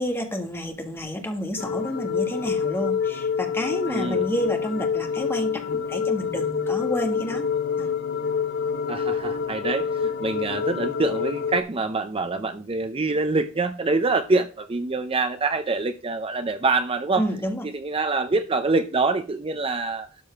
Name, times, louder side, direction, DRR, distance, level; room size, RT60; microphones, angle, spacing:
voice 1, 0.0-7.4 7.8-7.9 17.2-17.6, equal, 10° left, 4 dB, 1.6 m, -29 dB
sound 1, 1.6-11.6, left 6 dB, 55° left, 0.5 m, -27 dB
voice 2, 3.9-4.3 8.9-17.3 17.6-20.1, right 3 dB, 30° right, 9 dB, 0.6 m, -25 dB
12.5 x 4.7 x 5.7 m, 0.36 s
head